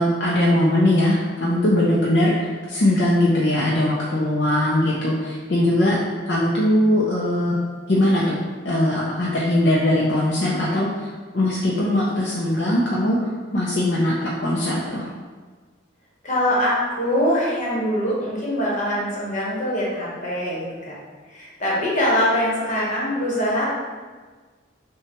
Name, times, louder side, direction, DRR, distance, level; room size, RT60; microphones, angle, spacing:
voice 1, 0.0-6.0 6.3-7.6 7.9-15.1, left 1 dB, 60° left, -6 dB, 0.6 m, -20 dB
voice 2, 16.2-21.0 21.3-23.7, equal, 40° left, -6 dB, 1.2 m, -23 dB
5.7 x 2.3 x 3.0 m, 1.4 s
head